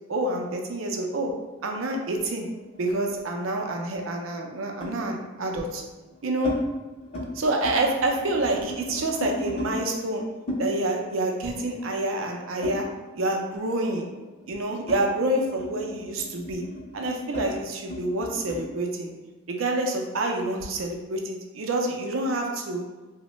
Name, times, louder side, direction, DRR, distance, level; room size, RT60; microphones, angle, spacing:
voice 1, 0.1-1.3 1.6-2.5 2.8-5.8 6.2-6.5 7.3-10.2 10.6-12.9 13.2-14.1 14.5-16.6 16.9-19.1 19.5-22.8, right 2 dB, 75° right, 2 dB, 0.5 m, -27 dB
sound 1, 2.1-3.5 4.8-5.0 5.8-6.6 6.9-7.3 7.5-9.7 10.5-13.3 13.6-18.6, left 1 dB, 30° left, 0.6 m, -36 dB
3.1 x 2.1 x 3.0 m, 1.2 s
head